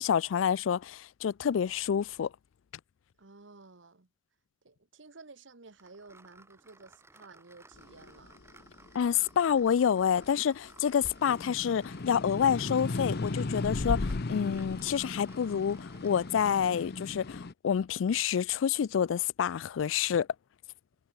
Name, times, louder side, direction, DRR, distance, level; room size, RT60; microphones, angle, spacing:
voice 1, 0.0-2.3 8.9-20.3, left 8 dB, 85° left, 0.4 m, -28 dB
voice 2, 3.2-4.1 4.6-8.4, right 3 dB, 75° right, 1.4 m, -53 dB
Pencil sharpener with crank, 5.8-16.9, right 2 dB, 15° right, 1.2 m, -58 dB
sound 1, 7.9-10.5 10.9-17.5, left 3 dB, 55° left, 0.8 m, -36 dB
head